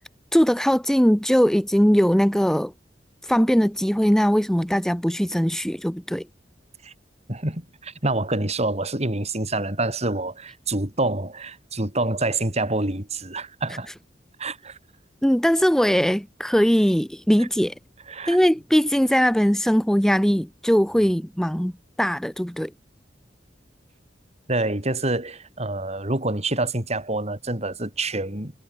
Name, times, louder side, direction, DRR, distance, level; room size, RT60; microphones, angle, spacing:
voice 1, 0.3-2.7 3.2-6.3 15.2-17.7 18.3-21.7 22.0-22.7, equal, 5° left, 0.7 m, -20 dB
voice 2, 7.3-13.9 14.4-14.8 17.4-17.5 18.1-18.4 24.5-28.5, right 2 dB, 40° right, 5.8 m, -27 dB
head